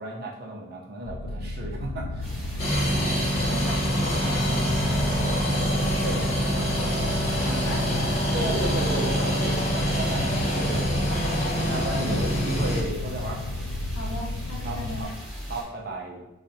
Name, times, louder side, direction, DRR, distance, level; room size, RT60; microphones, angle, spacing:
voice 1, 0.0-2.6 3.0-3.4 6.0-6.2 8.3-11.2 11.6-13.4 14.6-15.1 15.5-16.2, right 1 dB, 50° right, -2 dB, 0.6 m, -34 dB
sound 1, 1.0-15.0, left 2 dB, 90° left, 0.3 m, -33 dB
sound 2, 2.2-15.6, equal, 10° right, 1.0 m, -39 dB
sound 3, 2.6-12.8, equal, 30° left, 0.8 m, -25 dB
voice 2, 3.5-6.9 7.4-8.4 8.8-9.5 12.0-12.2 13.9-15.1, equal, 70° left, -1 dB, 0.7 m, -39 dB
4.2 x 2.4 x 2.6 m, 0.97 s
head